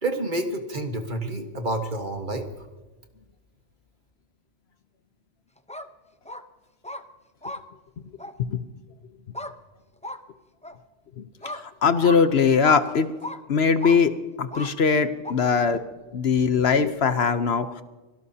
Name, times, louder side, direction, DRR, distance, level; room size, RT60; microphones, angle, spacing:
voice 1, 0.0-2.5, right 2 dB, 40° right, 5 dB, 1.6 m, -29 dB
sound 1, 5.6-5.9 6.2-6.4 6.8-7.0 7.4-7.6 8.2-8.3 9.3-9.5 10.0-10.2 10.6-10.8 11.4-11.6 12.0-12.2 12.6-12.8 13.2-13.4 13.8-14.0 14.5-14.7 15.2-15.3, left 1 dB, 10° left, 0.5 m, -35 dB
voice 2, 11.8-13.1 13.5-14.1 14.4-15.8 16.1-17.8, left 5 dB, 60° left, 11 dB, 1.0 m, -21 dB
24.5 x 17.5 x 2.8 m, 1.2 s
omnidirectional pair, 1.3 m